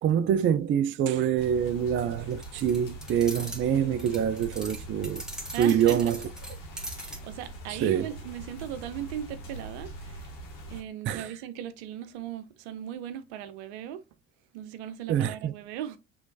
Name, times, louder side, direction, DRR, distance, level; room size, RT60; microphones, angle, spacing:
voice 1, 0.0-5.2 5.6-6.2 7.7-8.1 11.1-11.3 15.1-15.5, right 9 dB, 35° right, 0.4 m, -25 dB
sound 1, 1.4-10.8, right 1 dB, 65° left, 1.8 m, -42 dB
sound 2, 2.3-3.6 4.0-7.2, right 1 dB, ahead, 1.5 m, -41 dB
voice 2, 5.5-6.1 6.8-10.3 10.7-14.0 14.5-16.0, right 10 dB, 70° right, 0.7 m, -37 dB
6.2 x 3.2 x 2.6 m
hypercardioid pair, 55°, 34 cm